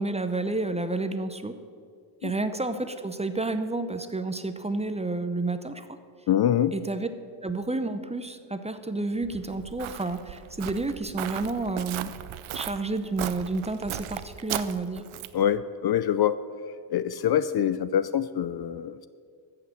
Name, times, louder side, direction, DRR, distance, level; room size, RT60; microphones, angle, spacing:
voice 1, 0.0-1.5 2.2-5.9 6.7-7.1 7.4-12.1 12.5-15.0, right 2 dB, 15° right, 9 dB, 0.7 m, -30 dB
voice 2, 6.3-6.7 15.3-16.4 16.9-19.1, left 10 dB, 50° left, 15 dB, 0.5 m, -25 dB
Walk footsteps, 9.2-15.5, right 12 dB, 75° right, 0.7 m, -37 dB
14.5 x 5.9 x 7.5 m, 2.1 s
cardioid pair, 95°, 50 cm